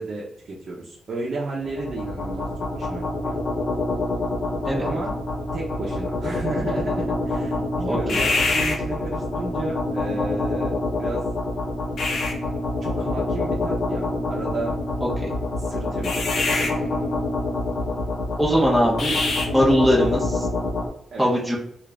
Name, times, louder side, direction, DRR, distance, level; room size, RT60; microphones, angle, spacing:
voice 1, 0.0-2.5 2.7-3.4 4.8-5.2 5.5-11.3 12.8-14.8 15.6-16.7 21.1-21.3, right 2 dB, 55° right, -4 dB, 0.8 m, -33 dB
sound 1, 1.6-20.9, left 2 dB, 65° left, 0.8 m, -26 dB
voice 2, 7.8-8.2 18.4-19.1 19.5-20.5 21.2-21.6, equal, ahead, -4 dB, 1.0 m, -20 dB
3.6 x 2.5 x 3.4 m, 0.69 s
cardioid pair, 125°, 0 cm